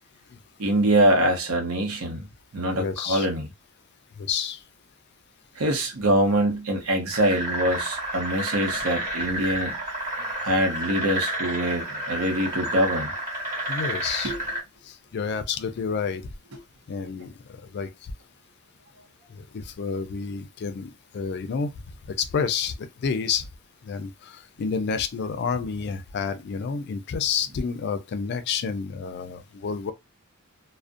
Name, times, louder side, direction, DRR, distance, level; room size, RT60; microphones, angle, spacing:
voice 1, 0.6-2.2 2.5-3.5 5.6-9.8 10.4-13.1 14.2-14.4, right 1 dB, 85° right, 0.8 m, -24 dB
voice 2, 2.7-3.3 4.2-4.6 13.7-14.3 14.9-16.3 16.9-17.9 19.3-21.7 22.2-23.4 23.8-29.9, left 6 dB, 50° left, 0.4 m, -29 dB
sound 1, 7.1-14.6, right 1 dB, 40° right, 1.0 m, -30 dB
2.4 x 2.1 x 2.5 m
head